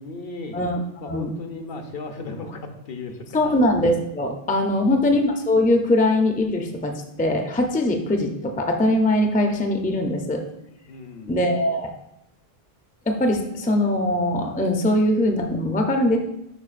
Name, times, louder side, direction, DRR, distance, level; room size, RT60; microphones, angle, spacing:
voice 1, 0.0-0.6 1.0-3.6 4.7-5.0 10.9-11.6, left 3 dB, 65° left, 5 dB, 1.0 m, -36 dB
voice 2, 3.3-10.4 11.3-11.9 13.1-16.2, left 1 dB, 10° left, 3 dB, 0.4 m, -21 dB
9.7 x 4.5 x 2.5 m, 0.84 s
omnidirectional pair, 1.1 m